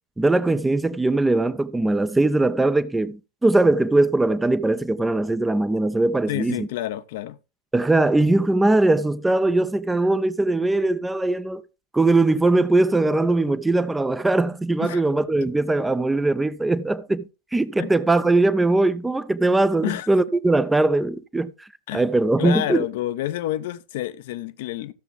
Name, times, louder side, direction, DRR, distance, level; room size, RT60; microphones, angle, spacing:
voice 1, 0.2-6.7 7.7-11.6 11.9-17.2 17.5-21.7 21.9-22.8, right 2 dB, 5° right, 0.6 m, -20 dB
voice 2, 6.3-7.4 14.8-15.0 17.8-17.9 19.8-20.1 21.9-22.0 22.4-24.9, left 14 dB, 50° left, 0.7 m, -29 dB
14.5 x 6.9 x 3.4 m
figure-of-eight pair, 90°, 0 cm